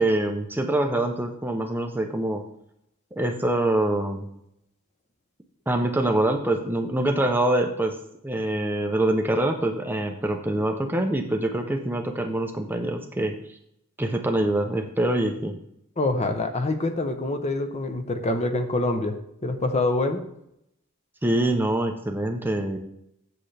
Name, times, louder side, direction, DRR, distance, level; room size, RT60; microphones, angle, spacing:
voice 1, 0.0-2.4 3.2-4.3 5.7-8.0 8.2-13.3 14.0-15.6 21.2-22.8, right 1 dB, 10° right, 4 dB, 0.5 m, -25 dB
voice 2, 16.0-19.2 19.4-20.2, left 2 dB, 30° left, 6 dB, 0.7 m, -25 dB
7.9 x 7.4 x 3.3 m, 0.77 s
head